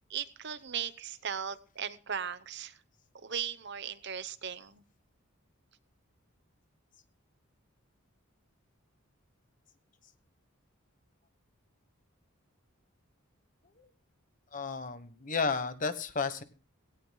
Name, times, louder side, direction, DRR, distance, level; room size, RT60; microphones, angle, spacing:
voice 1, 0.0-2.8 3.2-4.8, right 8 dB, 55° right, 14 dB, 0.9 m, -37 dB
voice 2, 14.5-16.4, left 4 dB, 40° left, 11 dB, 1.2 m, -33 dB
18.5 x 17.0 x 2.3 m, 0.35 s
head